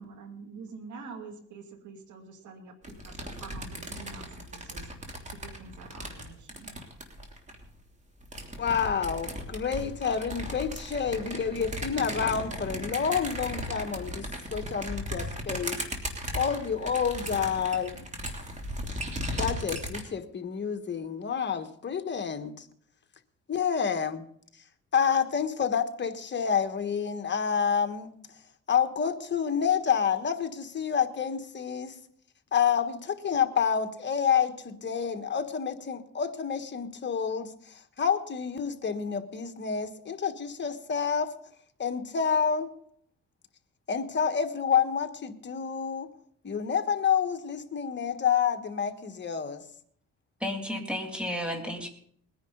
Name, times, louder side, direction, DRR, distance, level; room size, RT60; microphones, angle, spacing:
voice 1, 0.0-4.9 5.3-6.8, right 4 dB, 75° right, 2.4 m, -46 dB
sound 1, 2.8-7.6 8.2-20.0, equal, 25° right, 3.1 m, -36 dB
voice 2, 8.6-15.8 16.3-18.0 19.4-22.6 23.5-24.2 24.9-28.1 28.7-32.0 32.5-41.3 41.8-42.7 43.9-46.1 46.4-49.6, left 7 dB, 35° left, 1.4 m, -28 dB
voice 3, 50.4-51.9, left 1 dB, 5° right, 2.8 m, -32 dB
21.0 x 10.0 x 3.9 m
cardioid pair, 90°, 30 cm